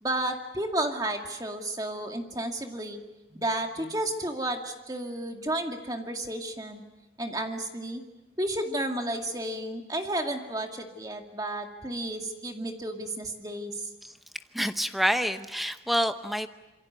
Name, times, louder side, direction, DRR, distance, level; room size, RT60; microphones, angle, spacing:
voice 1, 0.0-3.0 3.3-6.8 7.2-8.0 8.4-13.9, right 1 dB, 20° right, 3 dB, 2.2 m, -32 dB
voice 2, 14.5-16.5, equal, ahead, 9 dB, 0.9 m, -27 dB
27.0 x 23.5 x 8.1 m, 1.1 s
head